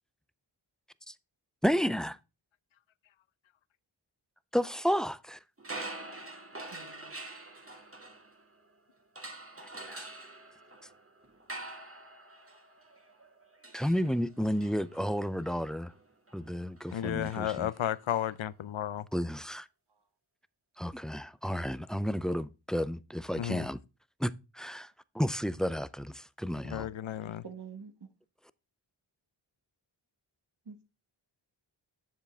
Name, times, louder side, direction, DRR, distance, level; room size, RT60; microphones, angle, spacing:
voice 1, 1.6-2.2 4.5-5.4 9.6-10.1 13.7-15.9 16.3-17.7 19.1-19.7 20.8-23.8 24.2-26.9, equal, ahead, 0.4 m, -32 dB
sound 1, 5.6-8.7 9.1-18.2, right 2 dB, 25° right, 1.6 m, -46 dB
voice 2, 6.7-7.1 27.4-27.9 30.7-30.8, right 6 dB, 55° right, 1.5 m, -46 dB
voice 3, 16.9-19.1 23.4-23.7 26.6-27.4, left 11 dB, 70° left, 0.6 m, -33 dB
7.4 x 7.3 x 3.3 m
cardioid pair, 55°, 49 cm